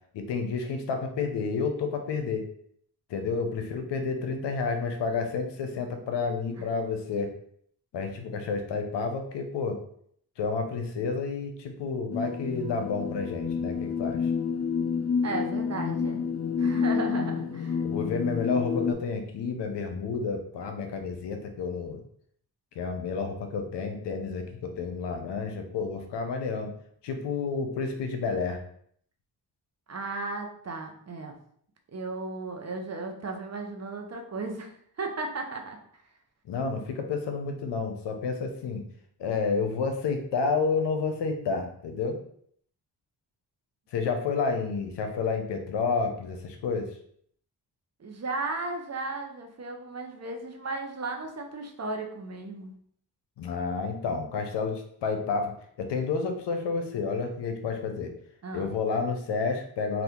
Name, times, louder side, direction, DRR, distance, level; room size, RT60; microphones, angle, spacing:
voice 1, 0.1-2.4 3.1-7.3 7.9-9.8 10.4-14.3 17.8-22.0 22.7-26.7 27.0-28.6 36.4-38.8 39.2-42.2 43.9-46.9 53.4-55.5 55.8-58.1 58.5-60.0, left 4 dB, 85° left, 5 dB, 0.6 m, -30 dB
sound 1, 12.1-18.9, left 6 dB, 40° left, 0.4 m, -29 dB
voice 2, 15.2-16.2 16.6-17.8 29.9-31.4 31.9-34.7 35.0-35.8 48.0-52.7 58.4-58.7, right 3 dB, 40° right, 3 dB, 0.7 m, -35 dB
2.8 x 2.4 x 3.5 m, 0.64 s
cardioid pair, 60°, 41 cm